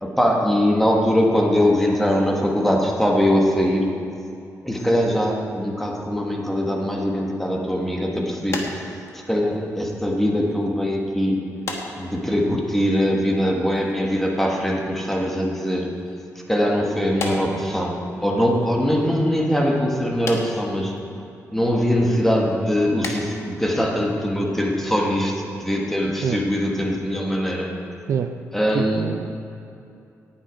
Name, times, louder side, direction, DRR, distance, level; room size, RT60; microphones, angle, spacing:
voice 1, 0.0-3.9 4.6-8.6 9.1-11.3 12.0-15.9 16.5-17.9 18.2-20.9 21.5-27.7 28.5-29.1, equal, 5° left, 0 dB, 1.4 m, -22 dB
sound 1, 8.5-10.2 10.5-10.8 11.6-12.6 12.9-14.0 14.3-14.7 15.6-16.2 17.1-18.3 18.6-18.7 20.2-21.0 21.6-21.7 22.2-22.5 22.9-23.3 23.6-23.8 24.0-24.3 25.0-25.1 25.4-25.5 25.7-25.8, left 3 dB, 55° left, 1.4 m, -34 dB
voice 2, 28.7-29.4, right 7 dB, 65° right, 9 dB, 0.5 m, -26 dB
18.0 x 7.5 x 5.1 m, 2.6 s
wide cardioid pair, 180°, 6 cm